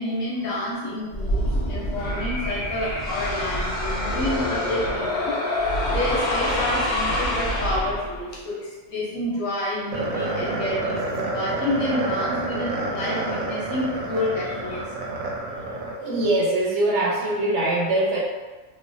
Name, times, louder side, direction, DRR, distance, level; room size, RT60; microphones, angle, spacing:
voice 1, 0.0-14.8, left 1 dB, 75° left, -5 dB, 1.2 m, -29 dB
sound 1, 1.1-8.3, left 1 dB, 60° left, 0.8 m, -26 dB
sound 2, 9.9-16.3, right 2 dB, 90° right, 1.0 m, -29 dB
voice 2, 16.0-18.2, right 2 dB, 65° right, -3 dB, 0.8 m, -22 dB
3.1 x 2.1 x 2.6 m, 1.2 s
omnidirectional pair, 1.4 m